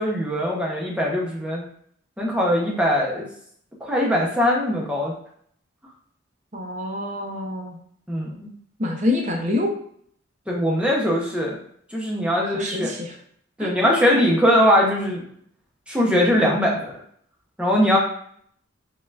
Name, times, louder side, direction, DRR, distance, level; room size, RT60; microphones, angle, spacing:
voice 1, 0.0-1.6 2.2-3.3 3.8-5.1 8.1-8.5 10.5-11.6 11.9-12.9 13.6-15.2 15.9-17.0 17.6-18.0, equal, 5° right, -3 dB, 0.9 m, -21 dB
voice 2, 6.5-7.8 8.8-9.7 12.5-13.1 13.6-13.7, left 2 dB, 35° right, 1 dB, 0.8 m, -26 dB
4.8 x 3.7 x 2.5 m, 0.64 s
head